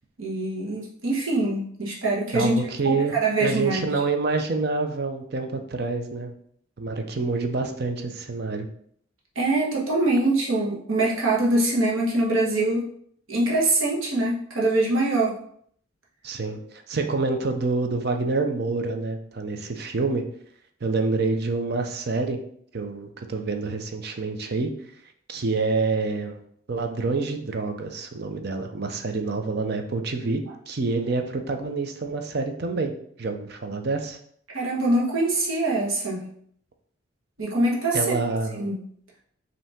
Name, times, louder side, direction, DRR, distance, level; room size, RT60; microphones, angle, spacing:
voice 1, 0.2-2.5 2.8-3.9 9.3-12.9 13.3-15.4 34.5-36.3 37.4-38.0 38.6-38.8, right 2 dB, 85° right, -4 dB, 1.2 m, -23 dB
voice 2, 2.3-6.3 6.8-8.7 16.2-20.2 20.8-22.4 22.7-24.7 25.3-26.4 26.7-32.9 33.2-34.2 37.9-38.7, right 3 dB, 50° right, 5 dB, 0.6 m, -27 dB
5.2 x 2.9 x 3.5 m, 0.64 s
head